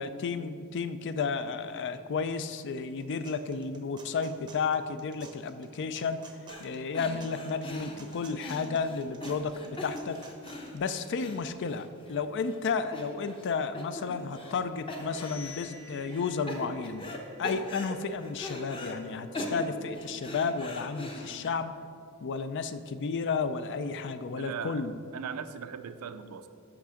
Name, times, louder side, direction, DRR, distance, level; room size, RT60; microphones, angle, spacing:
voice 1, 0.0-6.2 6.6-10.2 10.7-17.1 17.4-21.7 22.2-24.9, left 5 dB, 55° left, 12 dB, 0.4 m, -32 dB
sound 1, 2.8-10.8, right 4 dB, 20° right, 0.6 m, -53 dB
sound 2, 6.5-6.7 6.9-12.1 12.4-12.6 12.9-13.5 13.7-14.6 14.9-15.7 16.1-17.2 17.4-19.0 19.3-21.5, left 1 dB, 25° left, 0.8 m, -41 dB
sound 3, 14.7-20.4, left 4 dB, 70° left, 1.9 m, -53 dB
voice 2, 24.4-24.9 25.1-26.5, right 7 dB, 80° right, 10 dB, 0.5 m, -39 dB
5.9 x 5.8 x 6.3 m, 2.3 s
head